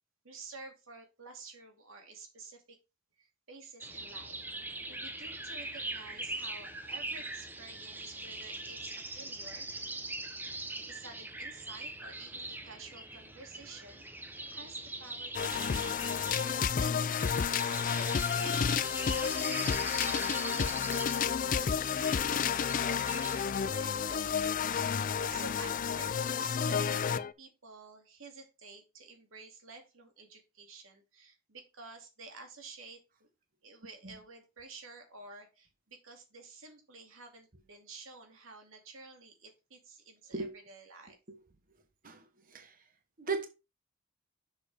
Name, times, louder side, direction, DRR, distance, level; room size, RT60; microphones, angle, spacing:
voice 1, 0.2-2.8 3.2-4.4 4.9-9.7 10.6-33.3 33.6-41.2, right 3 dB, 75° right, 2.4 m, -51 dB
sound 1, 3.8-23.4, right 2 dB, 10° right, 0.7 m, -42 dB
sound 2, 15.3-27.3, left 7 dB, 40° left, 0.3 m, -31 dB
voice 2, 34.0-34.1 40.3-40.5 42.0-42.2 42.5-42.7 43.2-43.5, right 4 dB, 40° right, 1.1 m, -35 dB
7.4 x 6.8 x 3.4 m
head